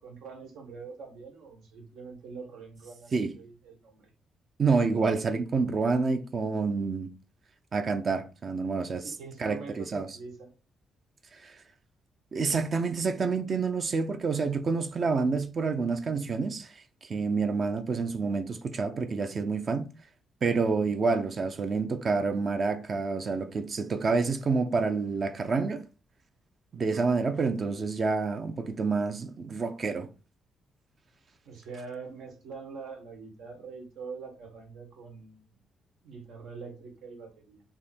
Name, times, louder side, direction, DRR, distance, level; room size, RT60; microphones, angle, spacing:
voice 1, 0.0-4.1 9.0-10.5 31.4-35.5 36.0-37.6, right 4 dB, 90° right, 1.4 m, -44 dB
voice 2, 4.6-7.1 7.7-9.0 9.4-10.1 11.4-11.6 12.3-16.7 17.0-19.8 20.4-25.8 26.7-30.1, right 4 dB, 40° right, 0.5 m, -28 dB
3.6 x 2.8 x 4.2 m
cardioid pair, 140°, 0 cm